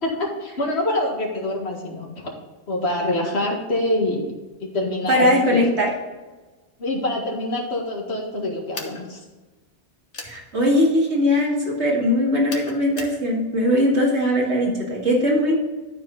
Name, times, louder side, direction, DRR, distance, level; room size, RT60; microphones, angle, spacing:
voice 1, 0.0-2.3 2.7-5.7 6.8-9.2, left 1 dB, 70° left, 0 dB, 2.1 m, -25 dB
voice 2, 5.1-5.9 10.2-15.6, left 1 dB, 75° right, -3 dB, 2.4 m, -20 dB
sound 1, 8.7-9.0 10.1-10.4 12.5-13.2, left 4 dB, 85° left, 1.5 m, -35 dB
12.5 x 4.8 x 4.0 m, 1.2 s
omnidirectional pair, 1.1 m